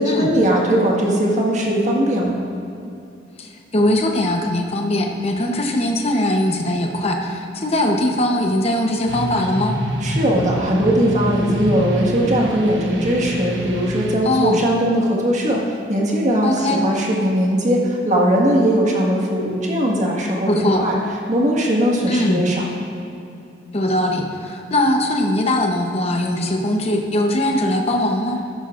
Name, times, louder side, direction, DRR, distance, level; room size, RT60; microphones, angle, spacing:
voice 1, 0.0-2.4 10.0-20.9 21.3-22.7, equal, 40° right, -2 dB, 1.7 m, -19 dB
voice 2, 3.4-9.8 14.2-14.7 16.4-16.8 20.5-20.8 22.1-22.4 23.7-28.4, left 1 dB, 35° left, 2 dB, 0.9 m, -20 dB
sound 1, 9.1-14.1, equal, 85° right, 1.3 m, -26 dB
14.0 x 11.5 x 2.5 m, 2.6 s
head